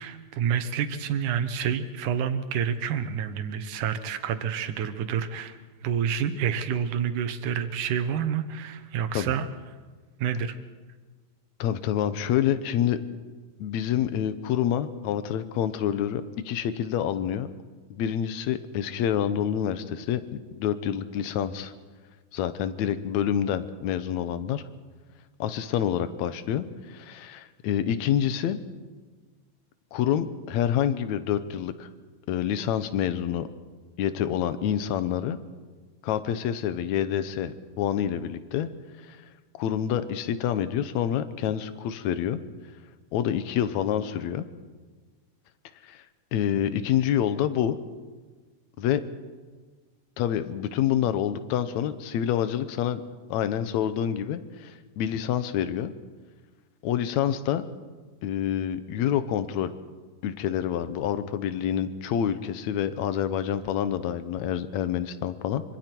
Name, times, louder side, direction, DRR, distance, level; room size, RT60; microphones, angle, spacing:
voice 1, 0.0-9.5 10.2-10.6, right 8 dB, 80° right, 10 dB, 2.6 m, -28 dB
voice 2, 11.6-13.0 13.6-17.5 17.9-21.7 22.3-24.6 25.4-28.6 29.9-31.9 32.3-33.5 34.0-35.4 36.0-38.7 39.1-39.2 39.6-42.4 43.1-44.5 45.8-46.0 46.3-47.8 48.8-49.0 50.2-53.0 53.3-55.9 56.8-57.6 58.2-59.7 60.2-65.6, left 10 dB, 70° left, 12 dB, 2.2 m, -27 dB
25.0 x 25.0 x 4.6 m, 1.4 s
omnidirectional pair, 3.5 m